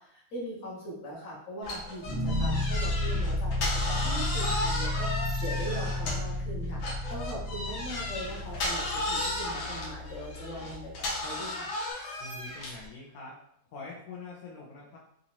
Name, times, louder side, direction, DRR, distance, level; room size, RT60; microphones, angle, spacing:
voice 1, 0.0-11.7, right 1 dB, 45° left, -6 dB, 1.4 m, -40 dB
sound 1, 1.6-6.4 6.8-12.9, left 2 dB, 90° left, 1.6 m, -34 dB
sound 2, 2.0-11.1, left 1 dB, ahead, 0.5 m, -32 dB
voice 2, 12.2-13.4 13.7-15.0, left 3 dB, 65° left, -5 dB, 1.1 m, -44 dB
4.0 x 2.5 x 2.9 m, 0.73 s
omnidirectional pair, 2.1 m